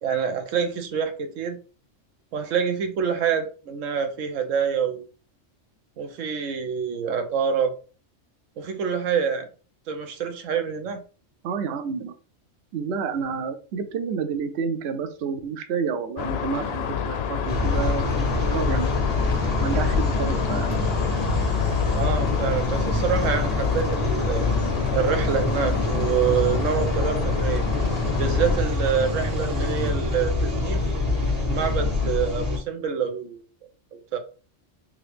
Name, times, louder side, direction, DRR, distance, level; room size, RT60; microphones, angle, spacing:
voice 1, 0.0-1.6 2.3-5.0 6.0-7.8 8.6-9.5 9.9-11.0 21.9-24.5 24.9-27.6 28.2-30.8 31.4-33.4 33.9-34.2, right 7 dB, 85° right, 1.1 m, -26 dB
voice 2, 11.4-12.1 12.7-18.9 19.6-20.8, right 6 dB, 65° right, 0.8 m, -29 dB
sound 1, 16.2-28.6, left 7 dB, 65° left, 0.7 m, -28 dB
sound 2, 17.5-32.6, left 2 dB, 30° right, 1.3 m, -25 dB
3.8 x 3.0 x 3.2 m
omnidirectional pair, 1.3 m